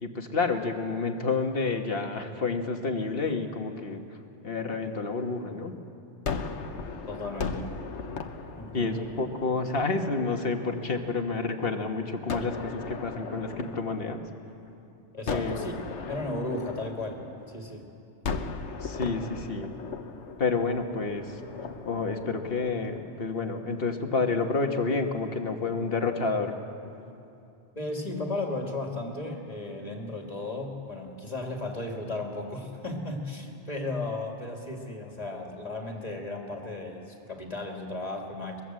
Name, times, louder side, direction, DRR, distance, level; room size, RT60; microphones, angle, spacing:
voice 1, 0.0-4.2 4.4-5.8 8.7-14.2 15.3-15.6 18.8-19.7 20.4-21.4 21.9-26.5, left 4 dB, 55° left, 4 dB, 1.7 m, -29 dB
Gunshot gunfire, 6.3-11.4 12.3-14.7 15.3-17.7 18.2-23.5, left 4 dB, 75° left, 1.4 m, -38 dB
voice 2, 7.1-7.7 8.6-9.0 15.1-15.7 16.1-17.9 27.7-38.6, left 2 dB, 35° left, 1 dB, 2.6 m, -35 dB
23.5 x 21.0 x 7.7 m, 2.7 s
omnidirectional pair, 1.2 m